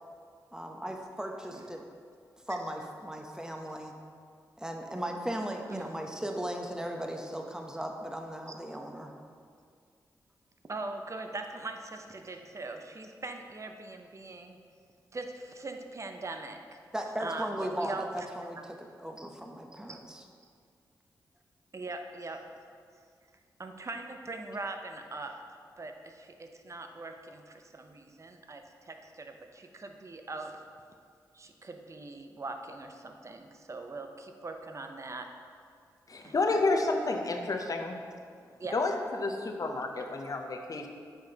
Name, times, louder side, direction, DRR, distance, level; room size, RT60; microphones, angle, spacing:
voice 1, 0.5-1.8 2.5-3.9 4.6-9.1 16.9-20.2, right 1 dB, 10° right, 3 dB, 0.8 m, -37 dB
voice 2, 10.7-14.6 15.1-16.6 17.2-18.3 19.9-20.0 21.7-22.4 23.6-25.3 25.8-30.6 31.3-35.3 36.2-36.3 38.6-38.8, right 3 dB, 40° right, 5 dB, 0.7 m, -41 dB
voice 3, 36.1-38.0 38.7-40.9, left 3 dB, 50° left, 4 dB, 0.7 m, -30 dB
7.6 x 4.9 x 2.9 m, 2.2 s
supercardioid pair, 40°, 8 cm